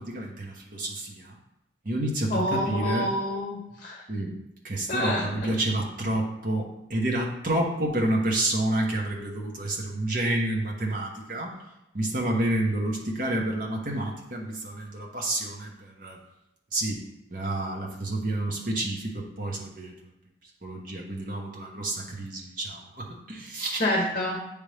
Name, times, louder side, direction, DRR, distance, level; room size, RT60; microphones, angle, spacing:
voice 1, 0.0-1.3 1.8-3.1 4.1-4.4 4.6-11.5 11.9-16.2 16.7-17.0 17.3-19.9 20.6-23.9, right 1 dB, 45° right, -1 dB, 1.1 m, -29 dB
voice 2, 2.3-4.0 4.9-5.3 23.8-24.4, left 1 dB, 45° left, -2 dB, 0.8 m, -27 dB
8.9 x 3.4 x 3.4 m, 0.88 s
head